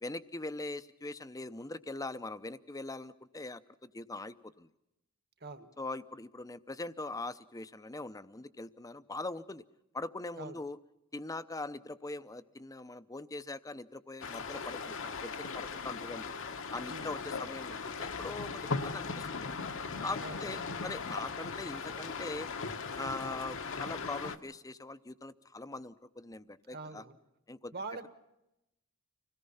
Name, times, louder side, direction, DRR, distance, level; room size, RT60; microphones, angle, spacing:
voice 1, 0.0-4.7 5.8-9.6 9.9-10.8 11.1-16.3 16.7-19.5 20.0-22.5 23.0-27.0 27.5-27.7, left 2 dB, 15° left, 13 dB, 0.6 m, -42 dB
voice 2, 5.4-5.7 10.4-10.6 16.9-17.3 20.2-20.4 26.7-27.2 27.7-28.1, right 3 dB, 45° right, 10 dB, 1.6 m, -43 dB
sound 1, 14.2-24.4, left 4 dB, 60° left, 1.1 m, -38 dB
26.0 x 17.5 x 5.6 m, 0.89 s
head